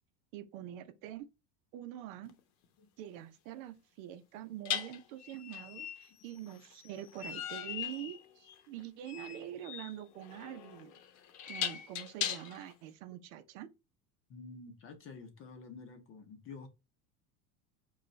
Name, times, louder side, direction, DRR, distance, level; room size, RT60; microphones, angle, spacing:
voice 1, 0.3-1.3 1.7-2.3 3.0-11.0 11.5-13.7, right 12 dB, 65° right, 0.7 m, -45 dB
sound 1, 2.3-2.4 4.7-12.7, left 9 dB, 70° left, 0.8 m, -40 dB
voice 2, 14.3-16.7, left 4 dB, 30° left, 0.7 m, -49 dB
5.0 x 2.4 x 3.1 m
cardioid pair, 160°, 44 cm